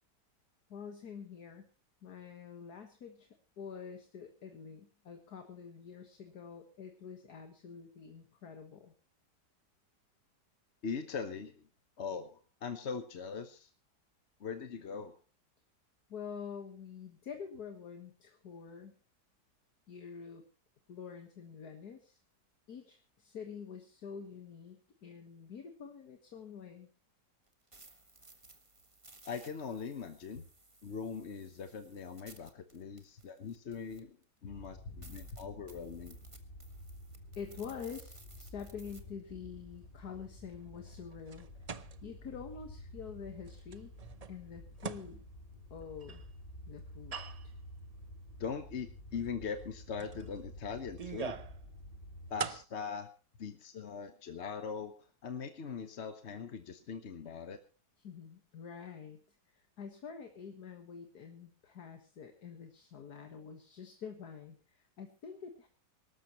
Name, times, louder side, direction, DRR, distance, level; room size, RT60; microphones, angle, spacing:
voice 1, 0.7-1.7 2.0-3.3 3.6-8.9 16.1-19.0 19.9-20.5 20.9-22.2 22.7-26.9 34.4-34.5 34.9-35.4 37.4-41.5 42.0-43.9 44.3-45.2 45.7-46.2 46.7-47.2 47.4-47.5 58.0-65.7, left 6 dB, 65° left, 5 dB, 2.0 m, -47 dB
voice 2, 10.8-11.5 12.0-13.7 14.4-15.1 29.2-30.4 30.8-34.2 34.4-36.2 48.4-51.5 52.3-53.1 53.4-54.9 55.2-57.6, left 6 dB, 45° left, 8 dB, 1.1 m, -41 dB
sound 1, 27.5-34.2 34.6-34.7 35.0-39.0, right 2 dB, 20° right, 1.6 m, -58 dB
sound 2, 34.5-52.3, left 1 dB, 25° left, 6.1 m, -51 dB
sound 3, 39.5-42.6 43.0-43.2 43.5-46.3 46.9-47.6 48.1-48.2 49.1-49.3 49.6-49.7 50.0-51.6 51.9-52.7, right 6 dB, 75° right, 0.3 m, -44 dB
24.5 x 13.0 x 3.0 m, 0.34 s
omnidirectional pair, 1.8 m